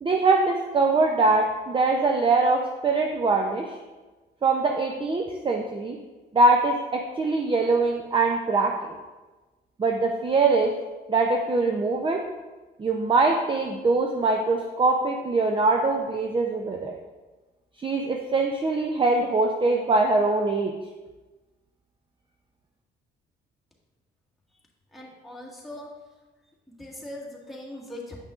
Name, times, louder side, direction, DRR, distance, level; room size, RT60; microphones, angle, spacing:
voice 1, 0.0-3.7 4.4-6.0 6.3-8.7 9.8-10.7 11.1-12.2 12.8-17.0 17.8-20.7, right 3 dB, 25° right, 2 dB, 0.5 m, -23 dB
voice 2, 24.9-25.9 26.7-28.2, left 1 dB, ahead, -3 dB, 1.7 m, -40 dB
8.0 x 5.8 x 2.4 m, 1.2 s
cardioid pair, 90°, 20 cm